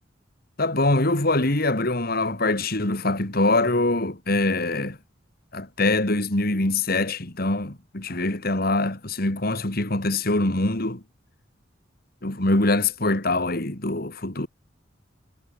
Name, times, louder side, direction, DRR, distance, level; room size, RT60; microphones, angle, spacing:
voice 1, 0.6-5.0 5.5-11.0 12.2-14.5, left 2 dB, 50° left, 2.6 m, -23 dB
head